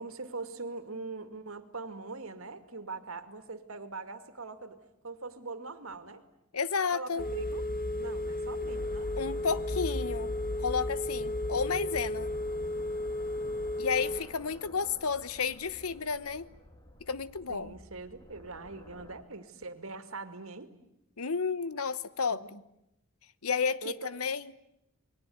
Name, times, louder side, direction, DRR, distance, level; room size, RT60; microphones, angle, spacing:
voice 1, 0.0-4.8 5.0-6.2 6.9-7.6 8.0-9.1 13.9-14.4 17.5-20.7 22.3-22.5 23.8-24.1, right 3 dB, 70° right, 10 dB, 2.4 m, -42 dB
voice 2, 6.5-7.2 9.2-10.3 10.6-12.3 13.8-16.5 17.1-17.8 21.2-22.6 23.4-24.5, left 5 dB, 85° left, 16 dB, 1.1 m, -32 dB
Telephone, 7.2-14.2, left 1 dB, 45° left, 1.4 m, -33 dB
sound 1, 8.6-19.1, equal, 20° left, 2.8 m, -53 dB
28.5 x 21.5 x 9.5 m, 0.84 s
head